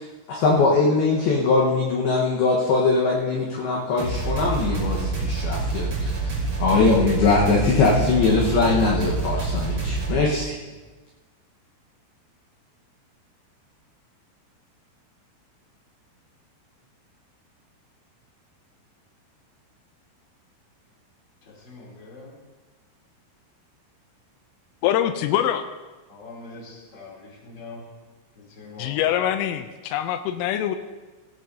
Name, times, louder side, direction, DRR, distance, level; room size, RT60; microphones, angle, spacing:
voice 1, 0.0-10.6, left 3 dB, 65° left, -3 dB, 2.7 m, -21 dB
sound 1, 4.0-10.2, right 3 dB, 35° right, 3.1 m, -27 dB
voice 2, 21.6-22.3 26.1-27.8 28.6-28.9, left 3 dB, 25° left, -3 dB, 2.9 m, -42 dB
voice 3, 24.8-25.6 28.8-30.8, left 11 dB, 85° left, 9 dB, 3.1 m, -24 dB
18.0 x 13.0 x 2.7 m, 1.2 s
omnidirectional pair, 5.8 m